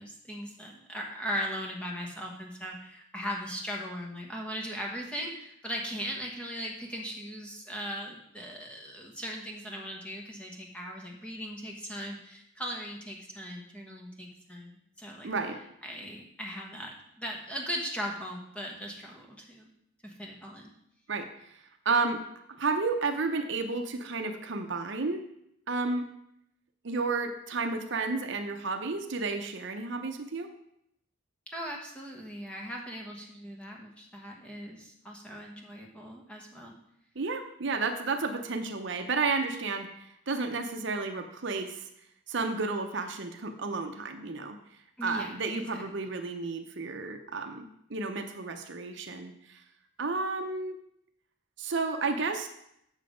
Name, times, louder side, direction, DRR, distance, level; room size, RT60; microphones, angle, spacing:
voice 1, 0.0-15.3 15.8-19.7 20.0-20.7 31.5-36.7 45.0-46.1, equal, 5° left, -1 dB, 1.2 m, -39 dB
voice 2, 15.2-15.6 21.1-21.3 21.8-22.2 22.6-25.3 25.7-26.1 26.8-30.5 37.2-41.8 42.3-44.6 45.0-49.6 50.0-50.8 51.6-52.5, right 3 dB, 55° right, 5 dB, 0.7 m, -32 dB
7.3 x 6.8 x 5.1 m, 0.76 s
head